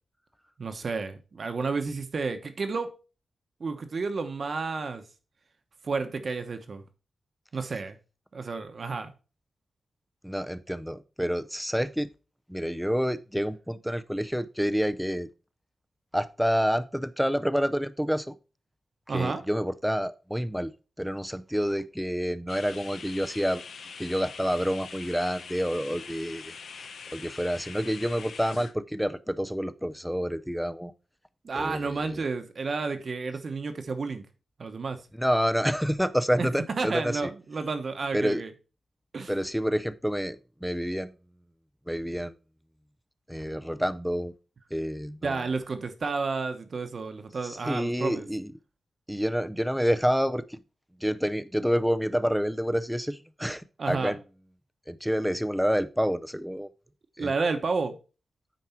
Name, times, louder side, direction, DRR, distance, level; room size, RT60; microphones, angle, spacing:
voice 1, 0.6-2.9 3.6-5.0 5.8-6.8 7.5-8.0 8.3-9.1 19.1-19.4 31.4-34.3 34.6-35.0 36.4-36.5 36.8-38.5 39.1-39.3 45.2-48.2 53.8-54.2 57.2-58.0, right 4 dB, 45° right, 1.1 m, -31 dB
voice 2, 10.2-12.1 12.5-15.3 16.1-18.4 19.1-20.7 21.0-23.6 24.0-30.9 31.5-32.2 35.1-37.3 38.1-38.4 39.3-41.1 41.9-42.3 43.3-44.3 44.7-45.4 47.4-48.5 49.1-50.6 51.0-54.2 54.9-56.7 57.2-57.3, equal, ahead, 0.5 m, -28 dB
sound 1, 22.5-28.7, left 5 dB, 80° left, 1.0 m, -43 dB
9.4 x 4.7 x 4.4 m
wide cardioid pair, 140°, 0 cm